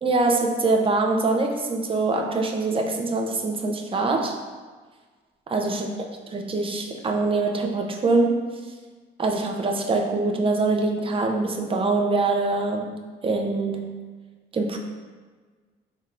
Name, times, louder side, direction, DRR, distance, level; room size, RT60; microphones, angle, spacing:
voice 1, 0.0-4.4 5.5-5.9 6.3-8.5 9.2-12.9 13.2-14.0 14.5-14.8, right 3 dB, 25° right, 2 dB, 0.5 m, -24 dB
4.3 x 3.5 x 2.4 m, 1.4 s
cardioid pair, 90°, 20 cm